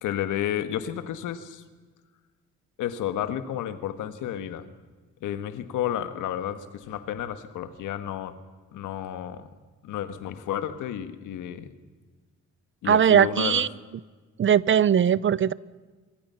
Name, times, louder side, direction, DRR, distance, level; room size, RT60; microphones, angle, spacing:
voice 1, 0.0-1.6 2.8-4.7 5.2-8.4 8.7-9.5 9.8-11.7 12.8-13.6, left 10 dB, 85° left, 1.7 m, -31 dB
voice 2, 12.9-13.7 14.4-15.5, right 9 dB, 40° right, 0.6 m, -20 dB
26.0 x 22.0 x 5.8 m
cardioid pair, 90°, 30 cm